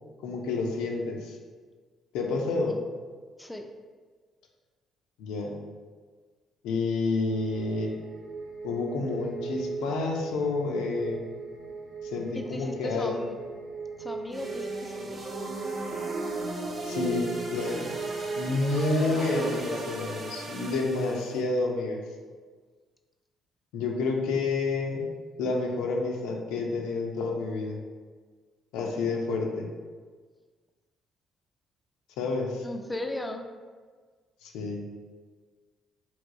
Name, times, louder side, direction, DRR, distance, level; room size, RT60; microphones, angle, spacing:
voice 1, 0.2-1.4 2.1-2.8 5.2-5.6 6.6-8.0 8.6-11.3 12.0-13.2 16.8-17.9 18.4-22.0 23.7-25.1 25.4-27.8 28.7-29.7 32.2-32.6 34.4-34.8, left 3 dB, 75° left, 1 dB, 0.4 m, -29 dB
sound 1, 7.2-19.7, right 4 dB, 90° right, 0.4 m, -38 dB
voice 2, 12.3-13.4 14.0-15.3 32.6-33.4, left 1 dB, 10° left, 4 dB, 0.4 m, -36 dB
sound 2, 14.3-21.4, right 2 dB, 45° right, 0.7 m, -36 dB
3.3 x 2.9 x 2.5 m, 1.5 s
hypercardioid pair, 45°, 0 cm